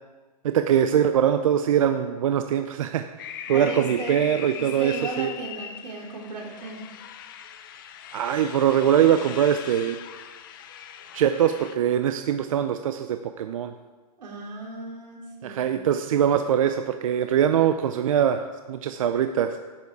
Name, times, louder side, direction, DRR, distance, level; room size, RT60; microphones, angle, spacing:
voice 1, 0.4-3.1 3.5-5.3 8.1-10.0 11.1-13.7 15.4-19.6, right 9 dB, 55° right, 8 dB, 0.6 m, -22 dB
sound 1, 3.2-11.8, left 9 dB, 30° left, 0.6 m, -40 dB
voice 2, 3.5-4.2 4.5-6.8 14.2-15.7, right 3 dB, 85° right, -2 dB, 3.8 m, -36 dB
11.5 x 9.5 x 4.7 m, 1.3 s
hypercardioid pair, 165°, 21 cm